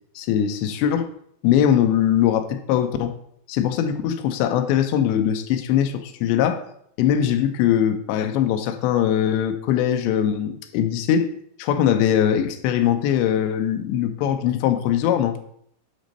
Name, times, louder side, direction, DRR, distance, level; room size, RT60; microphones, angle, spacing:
voice 1, 0.2-1.1 1.4-3.1 3.5-6.6 7.0-11.3 11.6-15.4, left 10 dB, 90° left, 8 dB, 3.0 m, -21 dB
9.2 x 4.1 x 6.5 m, 0.69 s
omnidirectional pair, 5.0 m